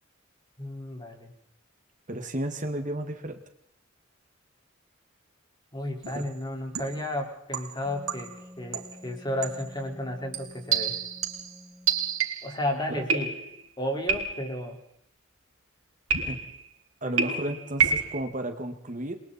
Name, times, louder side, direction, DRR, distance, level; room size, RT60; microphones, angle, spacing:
voice 1, 0.6-1.3 5.7-11.0 12.4-13.4 13.8-14.8 17.0-17.4, left 1 dB, 20° left, 2 dB, 4.6 m, -33 dB
voice 2, 2.1-3.4 6.1-6.2 16.3-16.4 17.0-19.2, right 1 dB, 40° right, 6 dB, 1.8 m, -33 dB
sound 1, 6.0-6.3 6.7-7.1 7.5-8.4 8.7-9.0 9.4-9.7 10.3-12.6 13.1-13.7 14.1-14.6 16.1-16.7 17.2-18.2, right 6 dB, 85° right, 3.6 m, -29 dB
Wind instrument woodwind instrument, 7.8-12.3, left 1 dB, 5° right, 7.5 m, -49 dB
29.5 x 22.5 x 4.3 m, 0.70 s
head